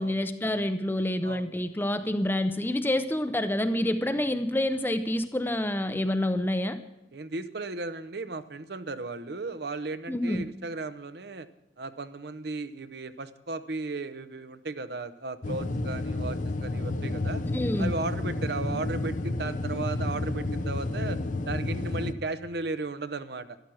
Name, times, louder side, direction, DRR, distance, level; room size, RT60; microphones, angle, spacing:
voice 1, 0.0-6.8 10.1-10.5 17.5-17.9, left 1 dB, 10° left, 9 dB, 0.5 m, -27 dB
voice 2, 7.1-11.5 11.8-17.4 17.8-21.2 21.5-23.6, right 3 dB, 60° right, 12 dB, 0.8 m, -35 dB
sound 1, 15.4-22.1, left 2 dB, 45° left, 0.7 m, -31 dB
13.0 x 12.0 x 6.3 m, 0.94 s
head